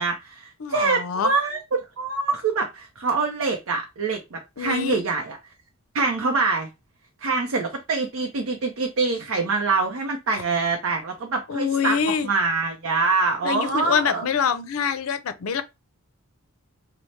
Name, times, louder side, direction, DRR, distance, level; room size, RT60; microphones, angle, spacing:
voice 1, 0.0-5.4 5.9-6.7 7.2-14.3, right 4 dB, 70° right, 0.5 m, -25 dB
voice 2, 0.6-1.3 4.6-5.0 11.5-12.3 13.4-15.6, left 6 dB, 75° left, 0.5 m, -25 dB
4.1 x 2.0 x 3.1 m
head